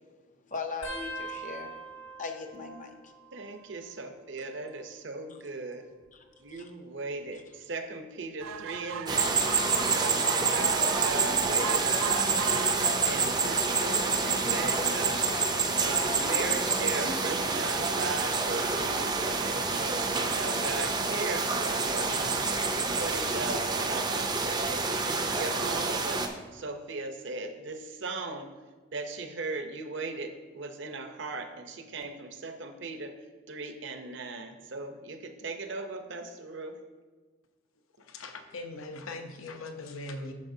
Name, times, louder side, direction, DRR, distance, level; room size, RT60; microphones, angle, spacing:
voice 1, 0.5-1.7 2.2-3.1 6.1-6.2 6.5-6.7, left 4 dB, 35° left, 5 dB, 0.6 m, -38 dB
sound 1, 0.8-4.0 4.3-4.9 5.9-7.4 8.0-8.3 9.5-9.9 11.4-11.5, right 1 dB, 65° left, 1.4 m, -45 dB
voice 2, 3.3-5.8 6.4-9.5 9.9-12.6 13.0-15.2 15.8-22.3 22.7-28.5 28.9-33.1 33.5-36.8, right 3 dB, 55° right, 6 dB, 0.7 m, -38 dB
sound 2, 8.4-21.0 21.6-21.7 22.0-22.1 22.3-22.4, right 7 dB, 75° right, 0.3 m, -40 dB
sound 3, 9.1-26.3, right 4 dB, 20° right, 0.5 m, -28 dB
voice 3, 38.0-40.3, left 2 dB, 80° left, 6 dB, 0.8 m, -40 dB
9.5 x 6.5 x 2.7 m, 1.4 s
head